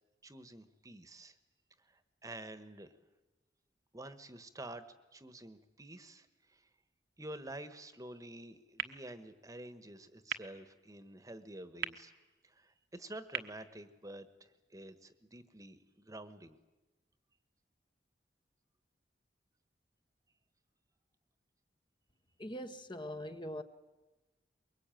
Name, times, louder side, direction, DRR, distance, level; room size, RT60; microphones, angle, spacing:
voice 1, 0.2-1.3 1.8-3.0 3.9-4.8 5.1-6.7 7.2-12.1 12.4-16.6, right 1 dB, 20° right, 1.3 m, -49 dB
Billiard Ball percussive hits, 8.8-14.7, right 8 dB, 65° right, 1.2 m, -46 dB
voice 2, 22.4-23.6, equal, 25° left, 1.0 m, -42 dB
23.5 x 22.5 x 9.1 m
head